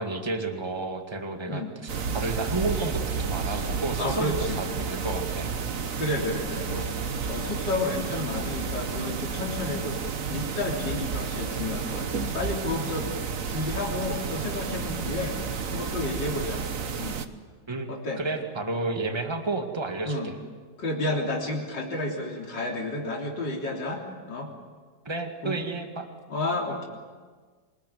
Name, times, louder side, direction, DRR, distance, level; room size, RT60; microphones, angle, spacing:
voice 1, 0.0-1.6 2.1-5.5 17.7-17.9 18.2-20.4 25.1-26.1, right 3 dB, 15° right, 4 dB, 2.0 m, -31 dB
sound 1, 1.9-17.3, right 5 dB, 50° right, 1.5 m, -31 dB
voice 2, 4.0-4.6 6.0-13.1 13.5-15.4 15.7-16.7 17.0-17.2 17.9-18.2 20.0-20.3 20.8-24.5 25.4-25.6 26.3-26.9, left 2 dB, 80° left, -1 dB, 4.1 m, -31 dB
26.5 x 21.0 x 9.5 m, 1.5 s
omnidirectional pair, 1.9 m